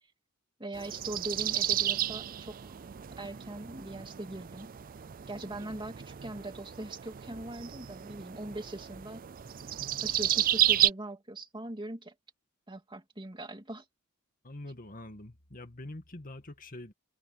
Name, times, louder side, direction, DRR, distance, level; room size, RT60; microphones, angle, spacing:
voice 1, 0.6-2.8 3.2-4.7 5.3-9.2 10.0-12.1 12.7-13.8, right 1 dB, 20° right, 2.4 m, -41 dB
sound 1, 0.7-10.9, right 11 dB, 40° right, 0.5 m, -32 dB
voice 2, 14.4-16.9, left 1 dB, 40° left, 2.1 m, -45 dB
head